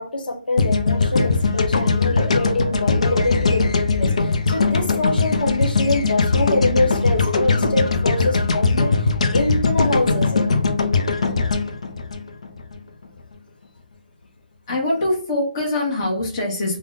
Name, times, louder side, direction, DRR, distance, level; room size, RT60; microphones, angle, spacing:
voice 1, 0.0-10.4, left 2 dB, 75° left, 3 dB, 0.9 m, -24 dB
sound 1, 0.6-12.8, left 4 dB, 45° left, 0.5 m, -20 dB
voice 2, 14.7-16.8, left 1 dB, 20° left, -4 dB, 0.9 m, -23 dB
3.6 x 2.1 x 3.7 m, 0.40 s
hypercardioid pair, 180°, 5 cm